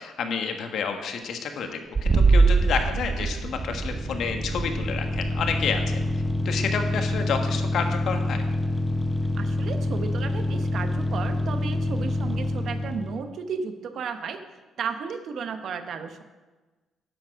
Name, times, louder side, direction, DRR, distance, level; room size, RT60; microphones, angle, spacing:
voice 1, 0.0-6.0 6.4-8.4, left 6 dB, 70° left, 5 dB, 1.4 m, -29 dB
sound 1, 1.9-7.5, right 4 dB, 35° right, 0.8 m, -24 dB
sound 2, 3.4-13.3, left 1 dB, 5° left, 0.6 m, -27 dB
voice 2, 9.4-14.4 14.8-16.2, right 5 dB, 65° right, 8 dB, 1.0 m, -34 dB
10.0 x 7.1 x 6.3 m, 1.2 s
cardioid pair, 90°, 0 cm